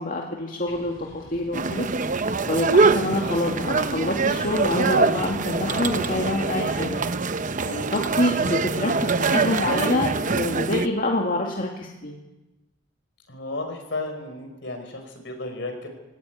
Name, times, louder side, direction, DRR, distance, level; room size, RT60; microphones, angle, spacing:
voice 1, 0.0-1.9 2.5-7.0 7.7-12.2, left 1 dB, 45° left, 0 dB, 2.3 m, -26 dB
sound 1, 0.7-6.4, left 1 dB, 80° left, 4.0 m, -42 dB
sound 2, 1.5-10.9, right 4 dB, 40° right, 0.8 m, -24 dB
voice 2, 13.3-15.9, left 2 dB, 65° left, 5 dB, 5.2 m, -33 dB
21.0 x 18.5 x 9.2 m, 1.1 s
head